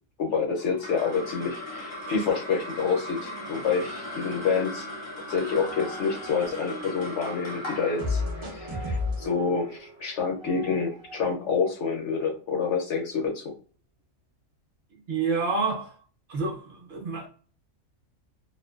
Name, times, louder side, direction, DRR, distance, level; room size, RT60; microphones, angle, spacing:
voice 1, 0.2-4.9 5.3-13.5, left 5 dB, 65° left, 0.9 m, -28 dB
sound 1, 0.6-11.2, equal, 45° left, 0.3 m, -39 dB
sound 2, 5.3-7.4 8.0-11.4, left 2 dB, 40° right, 0.4 m, -35 dB
voice 2, 15.1-15.9 16.3-17.3, right 4 dB, 55° right, 0.9 m, -28 dB
2.5 x 2.2 x 2.3 m
omnidirectional pair, 1.4 m